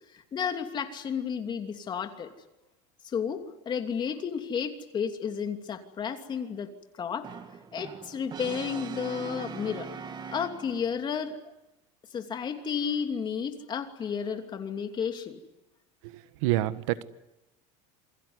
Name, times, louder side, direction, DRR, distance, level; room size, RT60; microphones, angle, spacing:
voice 1, 0.3-2.3 3.1-6.7 7.0-7.3 7.7-9.9 10.3-11.4 12.1-15.4, left 7 dB, 25° left, 6 dB, 2.9 m, -32 dB
Brass instrument, 7.2-11.0, right 6 dB, 25° right, 1.9 m, -41 dB
voice 2, 16.0-17.0, right 16 dB, 75° right, 13 dB, 1.5 m, -28 dB
28.0 x 21.5 x 9.7 m, 0.94 s
supercardioid pair, 145°, 17 cm